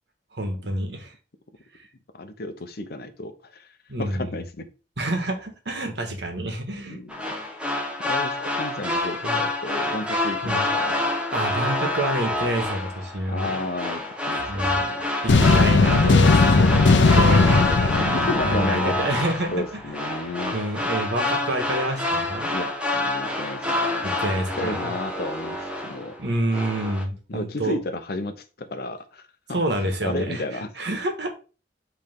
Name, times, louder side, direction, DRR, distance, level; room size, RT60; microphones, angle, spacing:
voice 1, 0.3-1.1 3.9-4.3 5.0-7.0 9.2-9.4 10.4-10.7 11.3-13.6 14.5-14.9 15.2-17.9 18.2-20.0 20.5-22.5 24.0-24.9 26.2-27.7 29.5-31.4, right 1 dB, 65° right, 1.5 m, -28 dB
voice 2, 2.2-3.7 4.0-4.7 6.9-7.3 8.0-11.0 13.3-15.1 16.7-17.4 18.0-19.0 19.5-20.6 22.5-24.3 24.6-26.2 27.3-30.7, left 2 dB, 60° left, 0.8 m, -32 dB
sound 1, 7.1-26.2 26.5-27.0, left 2 dB, 5° right, 1.0 m, -27 dB
sound 2, 15.3-19.3, left 3 dB, 85° left, 0.6 m, -18 dB
8.0 x 3.4 x 3.6 m
head